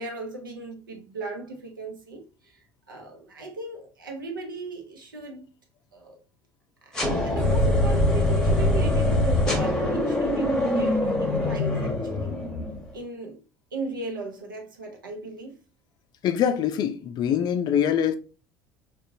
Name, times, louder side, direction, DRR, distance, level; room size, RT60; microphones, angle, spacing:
voice 1, 0.0-2.6 2.9-5.5 5.9-6.2 6.9-12.3 12.9-13.4 13.7-15.5, right 2 dB, 75° right, 0.8 m, -36 dB
sound 1, 6.9-12.9, left 1 dB, 5° left, 1.0 m, -23 dB
voice 2, 16.2-18.1, left 9 dB, 40° left, 0.4 m, -24 dB
3.8 x 2.4 x 2.7 m
figure-of-eight pair, 65°, 11 cm